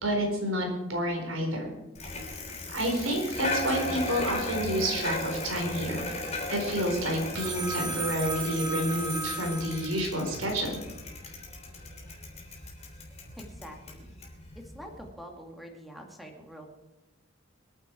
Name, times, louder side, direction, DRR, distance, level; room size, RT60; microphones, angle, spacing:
voice 1, 0.0-1.7 2.7-6.1 6.5-10.8, equal, 90° right, 2 dB, 4.2 m, -29 dB
Bicycle, 2.0-15.1, left 2 dB, 35° left, 3.3 m, -37 dB
Telephone, 7.3-10.2, right 2 dB, 20° right, 1.7 m, -35 dB
voice 2, 13.4-14.1 14.7-16.7, equal, ahead, 2 dB, 2.2 m, -45 dB
24.5 x 9.3 x 4.5 m, 1.0 s
head